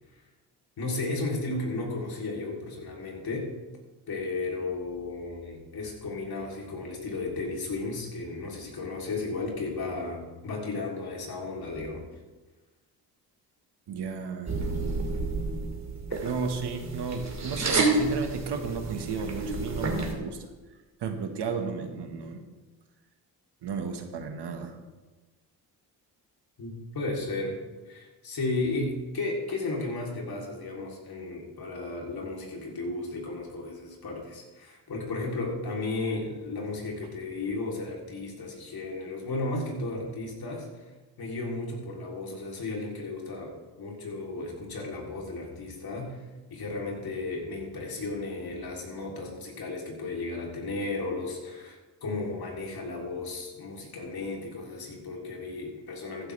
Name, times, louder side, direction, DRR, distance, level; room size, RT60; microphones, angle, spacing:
voice 1, 0.8-3.5 4.1-12.0 26.6-27.6 27.9-40.7 41.2-46.2 46.5-56.3, left 2 dB, 60° left, -1 dB, 3.5 m, -34 dB
voice 2, 13.9-14.5 16.2-20.5 21.0-22.4 23.6-24.8, right 5 dB, 70° right, 5 dB, 1.7 m, -33 dB
sound 1, 14.5-20.1, right 3 dB, 40° right, 2.5 m, -30 dB
14.5 x 11.5 x 3.4 m, 1.2 s
cardioid pair, 75°, 42 cm